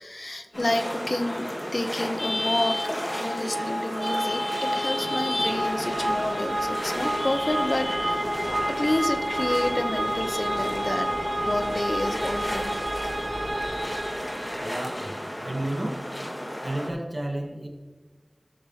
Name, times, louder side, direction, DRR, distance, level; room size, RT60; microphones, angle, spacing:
voice 1, 0.0-8.4 8.7-12.7 13.1-14.2, left 1 dB, 55° left, 7 dB, 1.1 m, -29 dB
sound 1, 0.5-16.9, equal, 25° left, 2.6 m, -34 dB
sound 2, 2.1-14.9, right 1 dB, 80° right, 2.7 m, -30 dB
voice 2, 14.6-15.1 15.4-16.1 16.6-17.7, right 1 dB, 40° right, -1 dB, 2.3 m, -32 dB
17.5 x 7.1 x 3.3 m, 1.3 s
wide cardioid pair, 50°, 0 cm